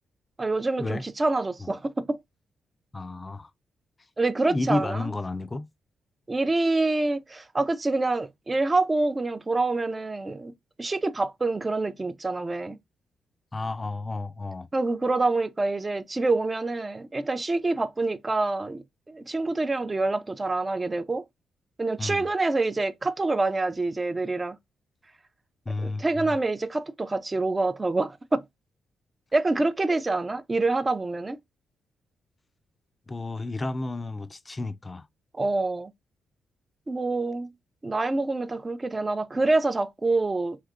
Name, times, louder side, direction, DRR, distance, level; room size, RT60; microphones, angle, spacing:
voice 1, 0.4-2.2 4.2-5.1 6.3-10.5 10.8-12.8 14.7-21.2 21.8-24.6 25.8-28.4 29.3-31.4 35.3-35.9 36.9-37.5 37.8-40.6, right 2 dB, 30° right, 0.5 m, -26 dB
voice 2, 2.9-3.5 4.5-5.7 13.5-14.7 22.0-22.3 25.7-26.4 33.1-35.1, left 2 dB, 30° left, 0.4 m, -31 dB
3.2 x 2.8 x 2.4 m
supercardioid pair, 55°, 0 cm